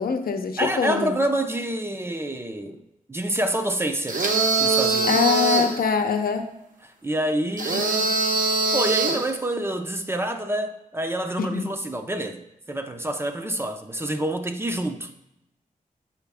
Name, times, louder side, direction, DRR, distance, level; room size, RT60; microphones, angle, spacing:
voice 1, 0.0-1.1 5.1-6.5 7.7-8.1 11.4-11.7, left 5 dB, 90° left, 0.7 m, -24 dB
voice 2, 0.6-2.8 3.1-4.2 4.6-5.1 7.0-7.9 8.7-15.1, right 1 dB, 15° right, 0.5 m, -27 dB
sound 1, 4.1-5.8 7.6-9.3, right 3 dB, 65° right, 1.0 m, -22 dB
7.1 x 4.9 x 3.5 m
wide cardioid pair, 140°, 15 cm